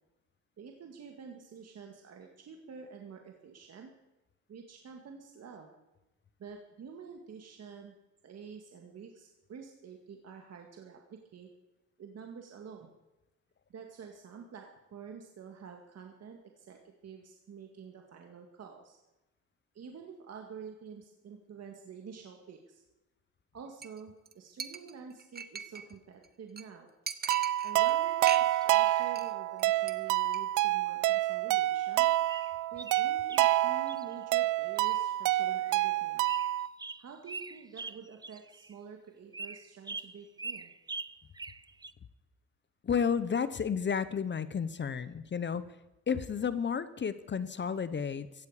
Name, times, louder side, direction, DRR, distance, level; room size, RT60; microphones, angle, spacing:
voice 1, 0.6-3.9 4.5-5.7 6.4-7.9 8.2-11.5 12.0-12.9 13.7-19.0 19.7-22.8 23.5-26.9 27.6-32.1 32.7-36.2 37.0-40.7, right 6 dB, 55° right, 2 dB, 2.0 m, -48 dB
Chink clink, 23.8-24.0 24.2-24.3 24.6-25.9 26.2-26.3 26.6-26.7 27.1-27.9 28.2-28.8 29.0-29.3 29.6-29.9 30.2-30.4, right 6 dB, 30° right, 1.1 m, -40 dB
sound 1, 27.3-36.7, right 15 dB, 85° right, 0.4 m, -28 dB
sound 2, 27.9-29.2 31.3-31.4 31.9-32.0 32.3-34.2 34.7-35.1 35.5-36.0 36.2-38.7 39.3-41.9, right 3 dB, 15° right, 0.6 m, -44 dB
voice 2, 42.8-45.6 46.1-48.5, left 6 dB, 35° left, 14 dB, 0.9 m, -32 dB
16.0 x 15.5 x 5.0 m, 1.0 s
cardioid pair, 90°, 30 cm